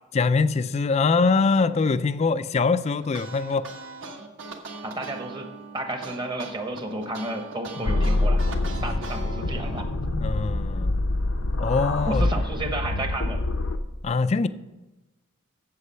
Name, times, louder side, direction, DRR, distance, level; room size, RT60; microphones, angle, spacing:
voice 1, 0.1-3.7 7.8-8.1 8.8-9.0 10.2-11.0 11.6-12.3 14.0-14.5, left 4 dB, 30° left, 0.3 m, -23 dB
sound 1, 3.0-9.8, right 3 dB, 65° right, 1.4 m, -39 dB
voice 2, 4.8-8.4 8.8-9.9 12.1-13.4, right 2 dB, 20° right, 1.0 m, -32 dB
sound 2, 7.9-13.8, left 2 dB, 75° left, 0.8 m, -25 dB
8.1 x 7.6 x 5.6 m
head